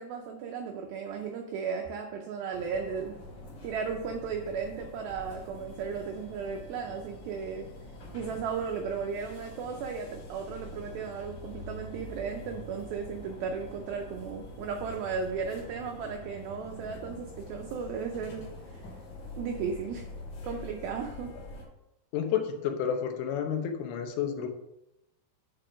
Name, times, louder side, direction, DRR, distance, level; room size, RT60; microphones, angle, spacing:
voice 1, 0.0-3.2 3.6-7.7 8.1-18.9 19.4-20.0 20.4-21.3, right 6 dB, 85° right, 3 dB, 2.1 m, -35 dB
sound 1, 2.5-21.6, left 1 dB, 50° left, 2.7 m, -45 dB
voice 2, 22.1-24.5, left 8 dB, 85° left, 5 dB, 3.1 m, -30 dB
8.7 x 3.8 x 5.0 m, 0.88 s
omnidirectional pair, 5.0 m